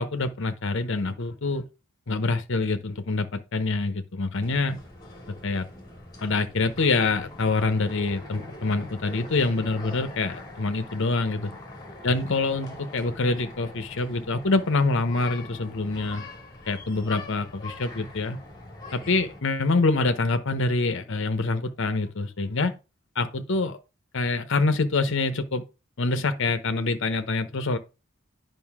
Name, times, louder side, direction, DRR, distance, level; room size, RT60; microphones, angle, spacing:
voice 1, 0.0-1.6 2.1-4.8 5.4-5.7 6.2-11.5 12.0-16.2 16.7-18.4 18.9-22.7 23.2-23.8 24.1-25.6 26.0-27.8, left 3 dB, 60° left, 0.9 m, -25 dB
sound 1, 4.4-19.4, left 2 dB, 20° left, 2.4 m, -43 dB
9.3 x 5.4 x 3.6 m
head